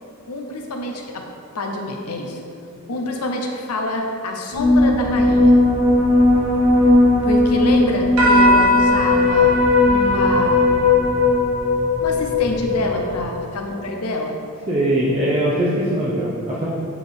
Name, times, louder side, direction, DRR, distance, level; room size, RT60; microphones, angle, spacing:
voice 1, 0.3-1.3 1.5-2.4 2.9-5.6 7.2-10.7 12.0-14.4, left 2 dB, 85° left, 2 dB, 0.7 m, -26 dB
sound 1, 4.5-13.1, left 2 dB, 80° right, 1.4 m, -16 dB
voice 2, 14.7-16.7, right 1 dB, 25° right, -6 dB, 0.7 m, -21 dB
8.3 x 3.9 x 3.6 m, 2.5 s
head